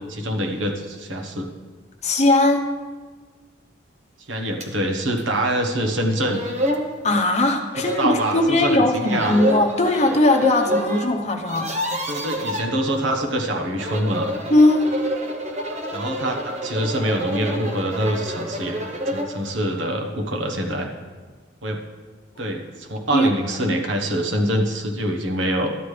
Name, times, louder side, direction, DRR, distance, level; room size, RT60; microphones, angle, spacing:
voice 1, 0.1-1.5 4.3-6.4 8.0-9.4 12.1-14.3 15.9-18.8 19.1-20.9 21.6-21.8 22.4-25.7, right 1 dB, 75° right, 2 dB, 1.2 m, -25 dB
voice 2, 2.0-2.6 7.0-11.7 14.5-14.9 23.1-23.3 23.6-23.8, left 1 dB, 35° left, 3 dB, 0.9 m, -19 dB
sound 1, 4.6-4.7 5.2-5.3 5.9-6.0 6.2-6.9 7.7-8.5 9.0-11.1 11.3-12.6 13.6-19.4, equal, 35° right, 1.0 m, -28 dB
12.5 x 9.2 x 3.3 m, 1.5 s
head